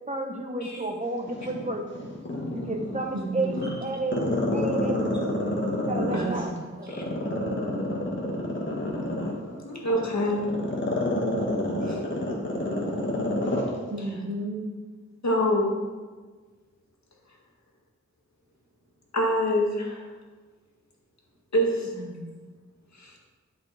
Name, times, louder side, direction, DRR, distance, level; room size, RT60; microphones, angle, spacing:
voice 1, 0.0-2.1 2.5-5.0 5.7-7.1, right 2 dB, 25° right, 2 dB, 1.2 m, -32 dB
Growling, 1.3-3.0 3.4-6.4 6.9-13.7 14.0-14.1, left 1 dB, 40° left, 1.9 m, -28 dB
voice 2, 3.1-3.7 6.1-6.5 13.9-14.6 22.0-22.3, right 2 dB, 65° right, -1 dB, 1.8 m, -32 dB
voice 3, 9.6-10.4 11.9-12.0 15.2-15.7 19.1-20.1 21.5-21.9 22.9-23.2, equal, 70° left, -1 dB, 1.8 m, -25 dB
10.5 x 5.3 x 4.3 m, 1.4 s
wide cardioid pair, 65°, 29 cm